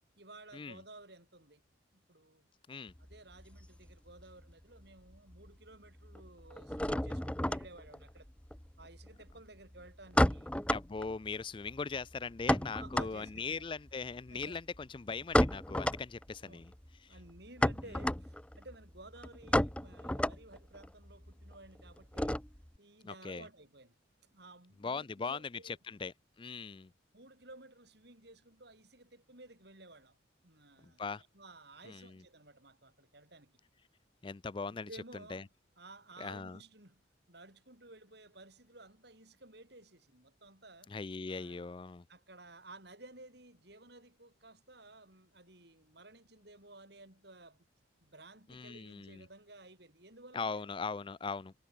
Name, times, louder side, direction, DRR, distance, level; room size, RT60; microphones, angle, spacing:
voice 1, 0.2-1.6 1.9-2.5 3.0-8.3 8.8-10.5 12.7-13.7 14.3-14.5 16.4-16.6 17.1-22.4 22.8-24.0 24.3-25.8 27.1-30.2 30.4-31.0 31.3-33.5 34.8-35.5 35.8-37.0 37.3-40.9 41.3-41.7 42.1-47.6 48.0-50.7, right 2 dB, 55° right, 5.9 m, -55 dB
sound 1, 2.9-4.5 4.8-5.5 5.7-22.8, left 1 dB, 5° left, 0.7 m, -34 dB
voice 2, 10.7-16.7 17.0-17.2 23.0-23.5 24.8-26.9 30.8-31.2 31.9-32.2 34.2-34.9 35.3-35.4 36.2-36.6 40.9-42.0 48.5-49.3 50.3-51.5, left 4 dB, 25° left, 0.4 m, -40 dB
head